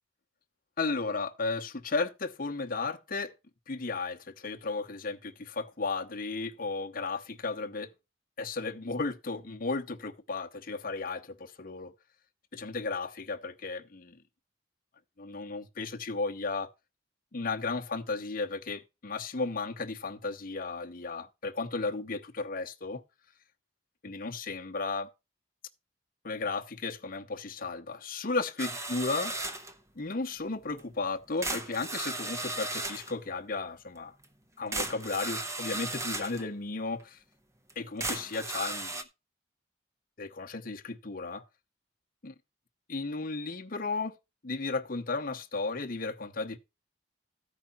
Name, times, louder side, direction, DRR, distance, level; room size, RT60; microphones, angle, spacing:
voice 1, 0.8-3.3 3.7-7.9 8.4-11.9 12.5-14.2 15.2-16.7 17.3-23.0 24.0-25.1 26.2-29.3 30.0-34.1 34.6-37.2 37.8-39.0 40.2-41.5 42.2-42.3 42.9-44.2 44.4-46.6, left 3 dB, 45° left, 0.8 m, -34 dB
sound 1, 28.6-29.8 30.8-30.9 31.4-33.1 34.2-34.3 34.7-36.4 37.0-37.1 37.7-37.8 38.0-39.0, right 2 dB, 15° right, 0.7 m, -35 dB
13.5 x 5.0 x 4.3 m
head